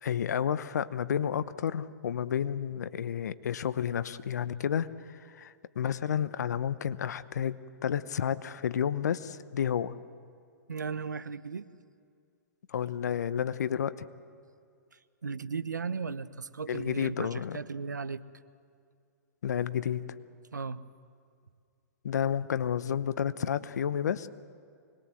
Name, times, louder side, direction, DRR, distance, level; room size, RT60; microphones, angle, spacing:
voice 1, 0.0-9.9 12.7-14.1 16.7-17.6 19.4-20.1 22.0-24.3, left 8 dB, 70° left, 15 dB, 0.9 m, -31 dB
voice 2, 10.7-11.7 15.2-18.2 20.5-20.8, right 5 dB, 85° right, 15 dB, 0.9 m, -36 dB
25.0 x 21.0 x 7.7 m, 2.3 s
hypercardioid pair, 120°, 10 cm